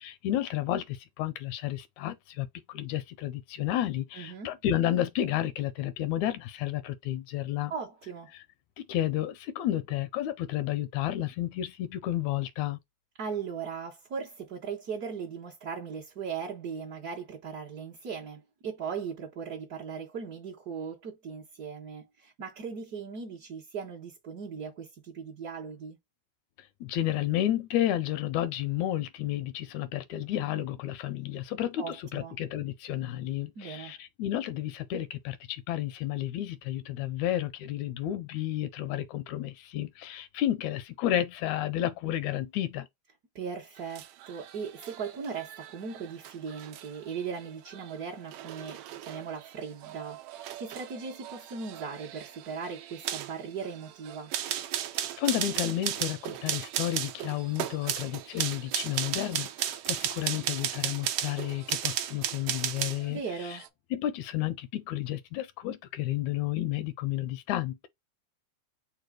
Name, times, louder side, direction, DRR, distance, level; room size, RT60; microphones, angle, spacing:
voice 1, 0.0-7.7 8.9-12.8 26.8-42.9 54.9-63.6 63.9-67.9, left 12 dB, 80° left, 1.9 m, -31 dB
voice 2, 4.1-4.5 7.7-8.3 13.2-26.0 31.8-32.4 33.5-33.9 43.3-54.3 63.1-63.6, right 6 dB, 70° right, 0.9 m, -38 dB
sound 1, 43.8-63.1 63.4-63.7, right 11 dB, 90° right, 1.3 m, -36 dB
4.6 x 2.2 x 4.7 m
omnidirectional pair, 3.4 m